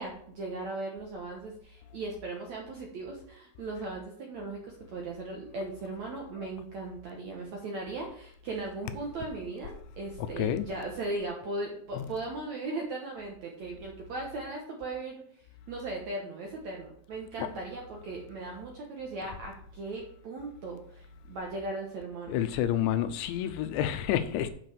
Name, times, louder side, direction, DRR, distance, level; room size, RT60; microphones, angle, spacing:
voice 1, 0.0-15.2 15.7-22.4, right 2 dB, 65° right, 1.8 m, -38 dB
voice 2, 10.2-10.6 12.0-12.1 17.4-17.5 22.3-24.5, left 10 dB, 90° left, 3.1 m, -29 dB
7.7 x 6.1 x 6.7 m
omnidirectional pair, 5.0 m